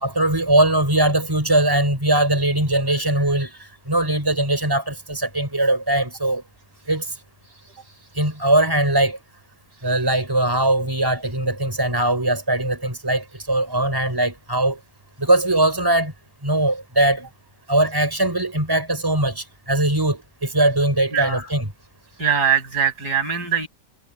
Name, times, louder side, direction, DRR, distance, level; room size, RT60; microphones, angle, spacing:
voice 1, 0.0-6.4 6.9-7.1 8.1-9.2 9.8-14.8 15.2-16.1 16.4-17.3 17.7-21.7, right 1 dB, 10° right, 5.0 m, -20 dB
voice 2, 21.1-21.4 22.2-23.7, right 8 dB, 70° right, 7.2 m, -21 dB
omnidirectional pair, 1.8 m